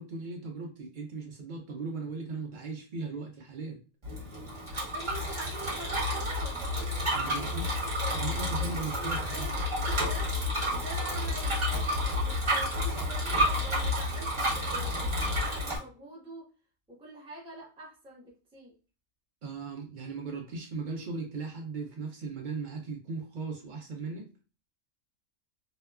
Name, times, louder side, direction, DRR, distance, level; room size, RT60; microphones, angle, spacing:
voice 1, 0.0-3.8 7.1-7.7 8.2-9.5 19.4-24.3, right 3 dB, 80° right, 2 dB, 0.4 m, -38 dB
Bicycle, 4.0-15.8, left 1 dB, 25° right, 1.0 m, -30 dB
voice 2, 4.7-7.7 8.0-10.3 10.7-16.4 17.0-18.7, right 1 dB, 5° right, -5 dB, 0.6 m, -45 dB
2.9 x 2.1 x 2.2 m, 0.34 s
omnidirectional pair, 1.4 m